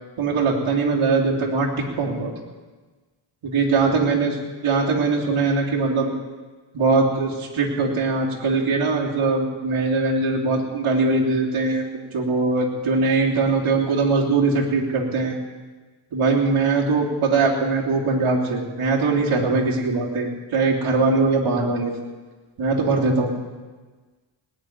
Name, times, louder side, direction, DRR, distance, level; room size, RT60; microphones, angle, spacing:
voice 1, 0.2-2.3 3.4-4.3 4.6-6.1 6.7-15.4 16.1-22.0 22.6-23.3, right 3 dB, 75° right, -3 dB, 3.2 m, -21 dB
19.5 x 6.8 x 9.6 m, 1.3 s
cardioid pair, 65°, 49 cm